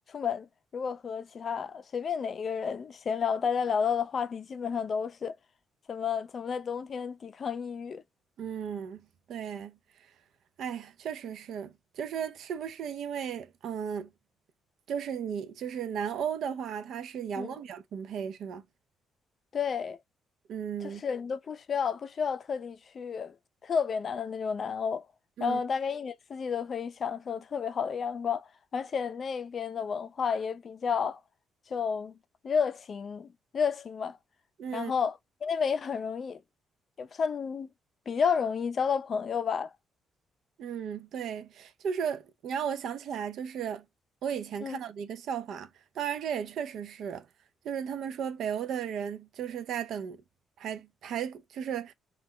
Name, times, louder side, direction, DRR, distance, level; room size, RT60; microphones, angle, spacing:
voice 1, 0.1-0.5 0.7-5.3 5.9-8.0 17.4-17.5 19.5-20.0 20.8-23.3 23.6-25.1 25.4-31.2 31.7-32.2 32.4-34.2 34.7-36.4 37.0-37.7 38.1-39.7 44.6-44.8, left 6 dB, 45° left, 0.4 m, -31 dB
voice 2, 8.4-9.8 10.6-14.1 14.9-18.6 20.5-21.0 25.4-25.6 34.6-34.9 40.6-43.9 44.2-45.7 46.0-47.3 47.6-50.2 50.6-51.9, right 8 dB, 75° right, 0.4 m, -35 dB
2.3 x 2.0 x 3.6 m
cardioid pair, 90°, 0 cm